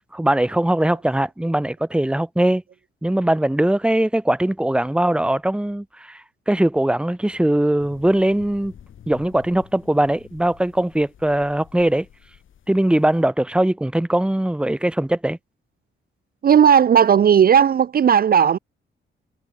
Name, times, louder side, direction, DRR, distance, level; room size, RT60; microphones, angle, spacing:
voice 1, 0.0-2.6 3.0-6.2 6.5-8.7 9.1-12.1 12.7-15.4, right 1 dB, 5° right, 1.1 m, -20 dB
sound 1, 7.8-13.2, left 9 dB, 70° left, 5.4 m, -48 dB
voice 2, 16.4-18.6, right 8 dB, 45° right, 0.6 m, -14 dB
cardioid pair, 110°, 21 cm